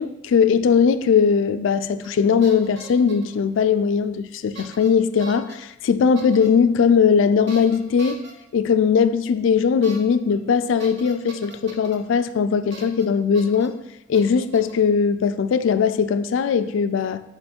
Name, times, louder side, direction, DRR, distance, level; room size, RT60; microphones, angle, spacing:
voice 1, 0.0-8.2 8.5-13.8 14.1-17.2, left 6 dB, 70° left, 0.3 m, -19 dB
sound 1, 2.0-2.2 2.4-3.3 4.5-4.9 5.2-5.6 6.2-6.5 7.5-8.3 9.8-10.0 10.3-10.4 10.8-12.0 12.7-13.1 13.3-13.7 14.1-14.8, right 2 dB, 60° right, 0.9 m, -41 dB
5.4 x 4.0 x 4.4 m
head